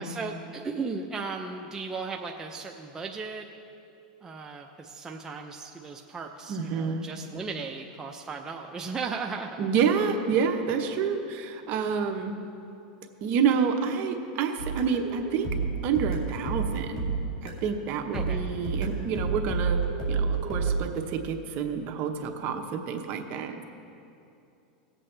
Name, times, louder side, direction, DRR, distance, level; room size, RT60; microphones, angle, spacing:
voice 1, 0.0-3.5 4.2-9.6 18.1-18.4, right 4 dB, 15° right, 1 dB, 0.5 m, -36 dB
voice 2, 6.5-7.1 9.6-12.4 13.2-15.5 15.8-17.1 17.4-19.8 20.1-23.6, right 6 dB, 45° right, 5 dB, 0.9 m, -28 dB
sound 1, 14.6-17.7 18.1-20.8, right 4 dB, 90° left, 2.5 m, -29 dB
18.0 x 7.7 x 3.3 m, 2.7 s
supercardioid pair, 125°, 4 cm